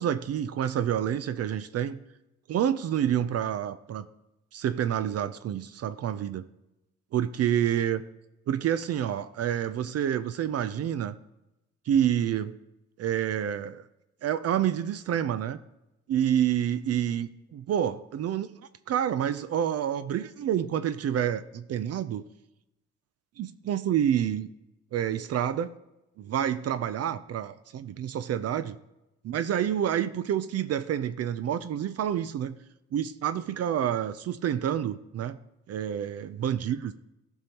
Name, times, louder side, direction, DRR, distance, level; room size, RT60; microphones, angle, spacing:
voice 1, 0.0-2.0 2.5-4.1 4.5-6.5 7.1-8.0 8.5-11.1 11.9-12.6 13.0-13.8 14.2-15.6 16.1-18.5 18.9-22.2 23.4-24.5 24.9-25.7 26.2-28.8 29.2-32.6 32.9-35.4 35.7-36.9, right 10 dB, 55° right, 13 dB, 0.5 m, -28 dB
14.0 x 5.5 x 2.9 m, 0.92 s
cardioid pair, 90°, 30 cm